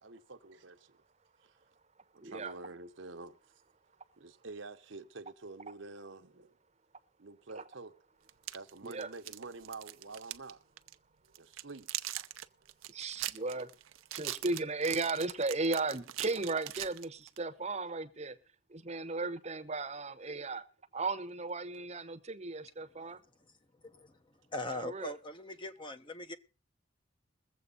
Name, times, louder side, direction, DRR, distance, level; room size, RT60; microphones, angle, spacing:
voice 1, 0.0-0.9 1.4-1.6 2.1-3.4 4.2-6.6 7.2-7.9 8.5-10.6 11.4-11.9 13.6-13.7 19.1-19.2, right 3 dB, 65° right, 1.0 m, -48 dB
voice 2, 2.2-2.5 7.5-7.6 8.8-9.1 12.9-13.7 14.1-18.4 18.7-20.6 20.9-23.2 24.7-25.1, right 3 dB, 35° right, 1.0 m, -36 dB
sound 1, 8.3-10.5 10.8-10.9 11.3-17.4, right 14 dB, 85° right, 0.7 m, -41 dB
voice 3, 23.8-24.2 24.5-26.4, left 2 dB, 25° left, 0.9 m, -41 dB
22.0 x 7.8 x 3.9 m
head